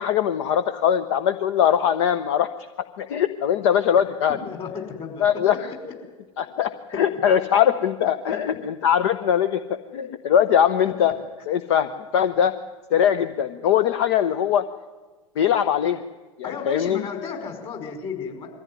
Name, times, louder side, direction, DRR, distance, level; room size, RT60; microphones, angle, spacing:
voice 1, 0.0-2.5 3.0-4.4 5.2-5.7 6.4-9.6 9.9-11.1 11.5-12.5 12.9-14.6 15.4-16.0 16.4-17.0, left 9 dB, 60° left, 11 dB, 0.9 m, -21 dB
voice 2, 4.4-5.8 6.9-7.0 16.4-18.5, left 6 dB, 30° left, 3 dB, 5.2 m, -33 dB
22.0 x 14.5 x 9.6 m, 1.3 s
figure-of-eight pair, 90°, 17 cm